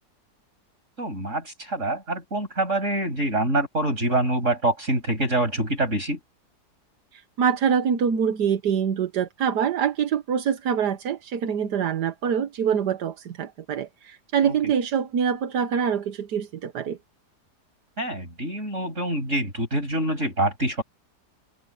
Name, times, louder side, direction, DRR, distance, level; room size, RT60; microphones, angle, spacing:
voice 1, 1.0-6.2 14.4-14.7 18.0-20.8, right 1 dB, 45° right, 8.1 m, -25 dB
voice 2, 7.1-17.0, right 7 dB, 85° right, 1.7 m, -25 dB
omnidirectional pair, 1.7 m